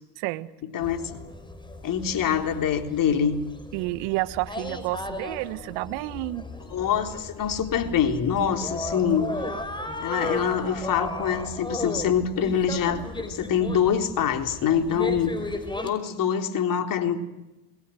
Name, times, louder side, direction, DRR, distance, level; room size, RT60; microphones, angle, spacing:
voice 1, 0.2-0.5 3.7-6.4, right 20 dB, 60° right, 14 dB, 1.6 m, -30 dB
voice 2, 0.7-1.2 1.8-3.4 6.7-9.3 10.0-15.3 15.8-17.2, left 8 dB, 40° left, 6 dB, 3.8 m, -25 dB
sound 1, 0.8-15.9, left 1 dB, 10° left, 5.1 m, -35 dB
28.0 x 22.5 x 7.8 m, 0.98 s
hypercardioid pair, 80°, 48 cm